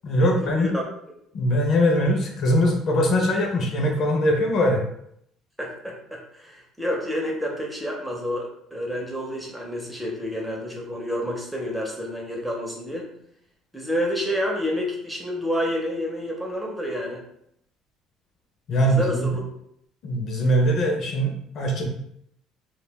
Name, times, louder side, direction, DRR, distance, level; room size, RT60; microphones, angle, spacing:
voice 1, 0.0-0.7 1.3-4.8 18.7-19.3 20.0-21.9, equal, 50° left, 2 dB, 0.5 m, -21 dB
voice 2, 5.6-13.1 13.7-17.2 18.8-19.4, equal, 5° right, -1 dB, 0.6 m, -29 dB
3.1 x 2.2 x 2.2 m, 0.72 s
cardioid pair, 120°, 0 cm